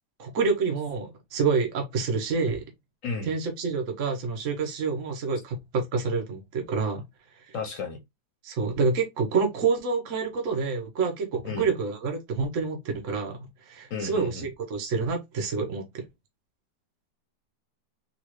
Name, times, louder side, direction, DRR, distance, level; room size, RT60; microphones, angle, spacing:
voice 1, 0.2-2.6 3.2-7.0 7.5-7.6 8.4-16.1, right 4 dB, 55° right, 1.0 m, -28 dB
voice 2, 7.5-8.0 11.4-11.7 13.9-14.5, left 4 dB, 60° left, 1.0 m, -33 dB
3.9 x 2.4 x 3.0 m
omnidirectional pair, 1.9 m